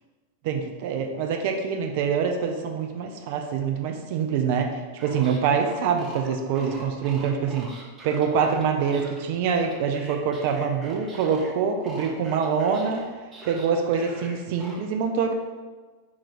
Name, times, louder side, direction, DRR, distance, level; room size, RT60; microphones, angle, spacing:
voice 1, 0.4-7.7 8.0-13.1 13.5-15.3, right 6 dB, 50° right, 4 dB, 0.3 m, -25 dB
sound 1, 5.0-11.5 11.8-14.8, right 1 dB, 20° right, 0.7 m, -42 dB
2.9 x 2.4 x 4.1 m, 1.3 s
figure-of-eight pair, 90°, 0 cm